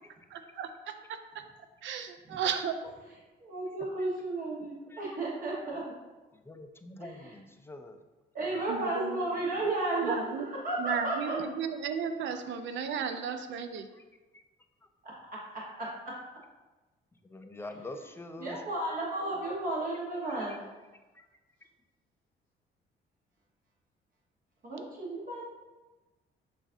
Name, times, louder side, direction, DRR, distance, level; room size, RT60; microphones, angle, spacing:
voice 1, 0.3-1.2 1.8-2.8 8.7-9.2 10.0-10.5 10.8-13.9, right 7 dB, 70° right, 8 dB, 0.5 m, -34 dB
voice 2, 3.4-5.8 7.0-7.4 8.3-11.5 15.0-16.2 17.6-18.1 18.4-20.6 24.6-25.4, right 2 dB, 45° right, -5 dB, 1.1 m, -34 dB
voice 3, 6.3-8.0 14.0-14.1 17.2-18.6 21.1-21.2, left 2 dB, 10° left, 6 dB, 0.4 m, -45 dB
6.9 x 2.4 x 2.5 m, 1.2 s
cardioid pair, 90°, 20 cm